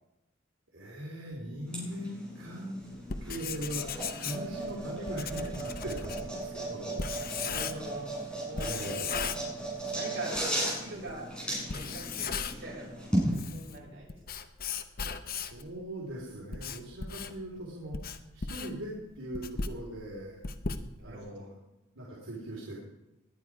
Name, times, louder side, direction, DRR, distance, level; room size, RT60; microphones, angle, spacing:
voice 1, 0.7-2.8 3.2-7.5 8.6-9.4 15.3-18.0 18.3-20.4 21.0-21.6 21.9-22.8, right 1 dB, 80° right, -4 dB, 3.5 m, -40 dB
sound 1, 1.7-13.3, right 1 dB, 5° left, 7.3 m, -36 dB
Writing, 3.0-8.0 8.6-10.0 10.3-10.4 11.1-11.2 11.6-12.8 13.2-15.7 16.2-21.3, left 5 dB, 45° left, 0.9 m, -37 dB
voice 2, 7.2-8.1 8.4-8.9 9.9-13.1 13.5-14.2 21.0-21.4, right 2 dB, 60° right, -3 dB, 6.6 m, -43 dB
20.0 x 10.5 x 4.8 m, 0.96 s
head